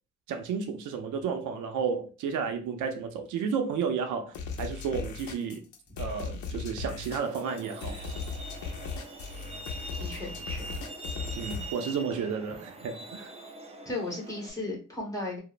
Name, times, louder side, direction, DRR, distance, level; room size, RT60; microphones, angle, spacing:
voice 1, 0.3-5.6 6.0-8.0 11.3-13.3, right 6 dB, 75° right, 0.5 m, -32 dB
sound 1, 4.3-11.7, left 5 dB, 70° left, 0.6 m, -37 dB
Truck, 7.1-14.5, right 2 dB, 20° right, 0.4 m, -43 dB
voice 2, 10.0-10.7 13.8-15.4, left 2 dB, 10° left, 1.2 m, -35 dB
2.8 x 2.0 x 2.4 m
cardioid pair, 90°, 30 cm